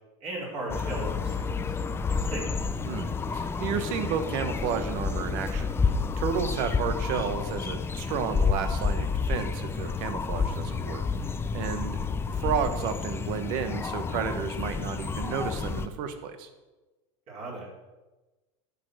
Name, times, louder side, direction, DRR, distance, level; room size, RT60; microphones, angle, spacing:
voice 1, 0.2-1.7 2.2-2.5 12.0-12.2 17.3-17.7, right 2 dB, 40° right, -3 dB, 4.1 m, -37 dB
sound 1, 0.7-15.9, left 5 dB, 15° left, 0.5 m, -30 dB
voice 2, 2.9-11.1 11.5-12.0 12.3-16.5, right 7 dB, 55° right, 9 dB, 1.3 m, -32 dB
10.0 x 6.9 x 6.5 m, 1.2 s
supercardioid pair, 125°, 16 cm